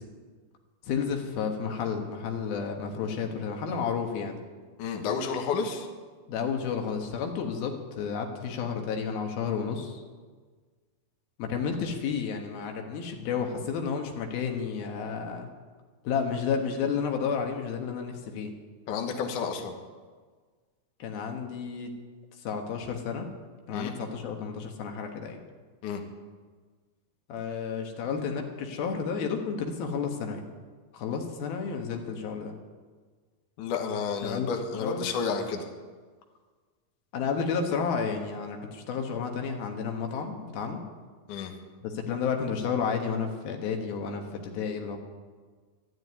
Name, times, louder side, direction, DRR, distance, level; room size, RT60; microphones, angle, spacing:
voice 1, 0.8-4.4 6.3-10.0 11.4-15.5 16.0-18.5 21.0-21.9 22.4-23.3 23.7-25.4 27.3-30.4 30.9-32.5 34.2-34.5 34.8-35.0 37.1-40.8 41.8-45.0, left 6 dB, 80° left, 3 dB, 3.3 m, -31 dB
voice 2, 4.8-5.9 18.9-19.7 23.7-23.9 25.8-26.0 33.6-35.7 41.3-41.5, left 5 dB, 65° left, 3 dB, 2.6 m, -31 dB
12.5 x 11.5 x 9.7 m, 1.5 s
omnidirectional pair, 4.3 m